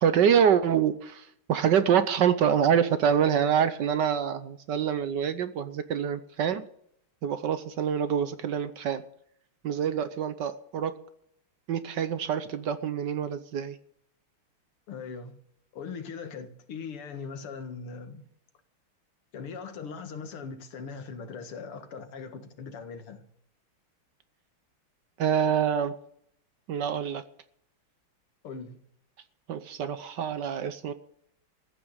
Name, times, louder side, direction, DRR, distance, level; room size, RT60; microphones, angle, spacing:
voice 1, 0.0-6.7 7.2-9.0 9.6-11.0 11.7-13.8 25.2-25.9 26.7-27.2 29.5-30.9, right 8 dB, 65° right, 1.3 m, -26 dB
voice 2, 14.9-15.4 15.7-18.3 19.3-23.3 28.4-28.8, left 5 dB, 90° left, 2.5 m, -40 dB
15.0 x 9.1 x 8.0 m
omnidirectional pair, 2.4 m